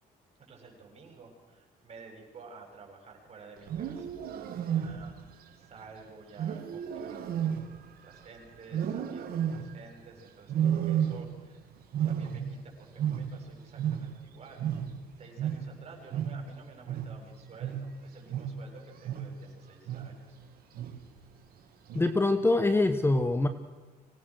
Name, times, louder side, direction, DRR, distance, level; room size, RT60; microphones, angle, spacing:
voice 1, 0.5-11.6 12.0-14.7 15.2-20.3, right 4 dB, 40° right, 1 dB, 7.9 m, -52 dB
Wild animals, 3.6-5.3 6.4-8.2 8.7-9.9 10.5-11.5 11.8-14.3 14.6-19.5 19.9-20.3 20.7-21.2 21.9-22.3, right 9 dB, 60° right, 2.7 m, -33 dB
voice 2, 21.9-23.5, left 2 dB, 15° left, 10 dB, 1.3 m, -24 dB
25.0 x 19.0 x 6.4 m, 1.3 s
cardioid pair, 110°, 17 cm